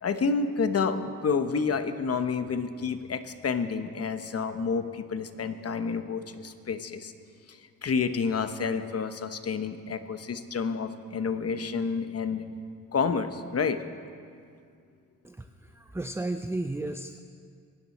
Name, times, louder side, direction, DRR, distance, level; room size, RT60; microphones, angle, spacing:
voice 1, 0.0-7.1 7.5-12.4 12.9-13.8, left 5 dB, 45° left, 9 dB, 1.0 m, -29 dB
voice 2, 15.2-17.2, right 2 dB, 10° right, 8 dB, 0.4 m, -34 dB
23.0 x 10.5 x 4.2 m, 2.3 s
cardioid pair, 80°, 34 cm